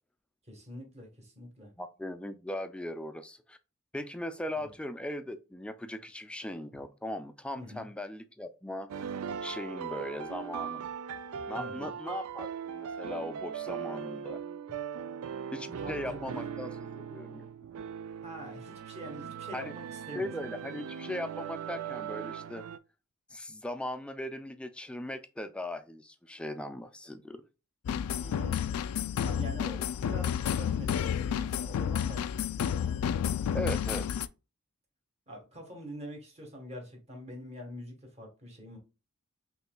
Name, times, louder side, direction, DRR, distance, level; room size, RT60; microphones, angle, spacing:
voice 1, 0.5-1.7 4.5-4.7 7.6-7.9 11.5-11.9 14.9-15.0 15.7-16.4 18.2-20.3 28.1-28.8 29.2-32.4 35.3-38.8, equal, 30° right, 1.4 m, -45 dB
voice 2, 1.8-3.6 3.9-9.0 9.4-10.9 11.5-14.4 15.5-17.5 19.5-19.7 20.1-22.6 23.3-27.4 33.5-34.1, left 1 dB, 5° left, 0.3 m, -39 dB
sound 1, 8.9-22.8, right 7 dB, 80° right, 0.4 m, -39 dB
sound 2, 27.8-34.3, left 8 dB, 85° left, 0.3 m, -31 dB
5.4 x 3.1 x 2.2 m
head